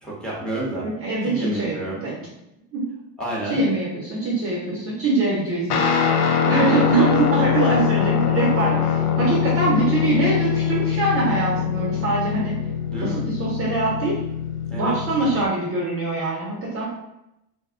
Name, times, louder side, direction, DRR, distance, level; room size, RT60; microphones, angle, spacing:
voice 1, 0.0-0.9 1.2-2.1 3.2-3.7 6.5-6.9 12.9-13.2 14.7-14.9, right 1 dB, ahead, -6 dB, 1.0 m, -30 dB
voice 2, 0.8-2.2 2.7-2.9 3.5-5.9 6.4-12.5 13.0-14.1 14.7-16.8, right 3 dB, 30° right, -4 dB, 0.7 m, -23 dB
Guitar, 5.7-15.4, left 8 dB, 70° left, 0.6 m, -23 dB
2.7 x 2.3 x 3.5 m, 0.87 s
supercardioid pair, 115°, 44 cm